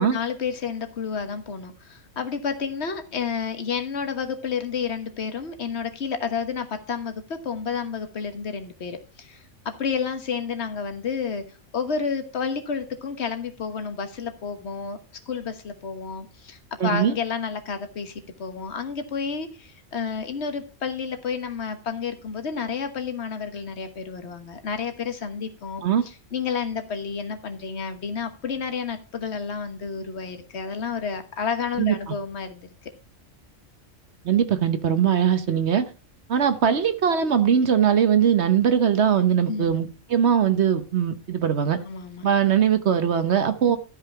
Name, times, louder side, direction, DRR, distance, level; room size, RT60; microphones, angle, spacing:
voice 1, 0.0-11.5 11.7-15.0 15.3-32.7 39.5-39.8 41.8-42.3, left 6 dB, 60° left, 8 dB, 1.5 m, -30 dB
voice 2, 16.8-17.2 25.8-26.0 31.8-32.1 34.2-35.9 36.3-41.8 42.2-43.8, right 8 dB, 60° right, 10 dB, 1.1 m, -21 dB
12.5 x 5.6 x 5.5 m, 0.33 s
omnidirectional pair, 1.3 m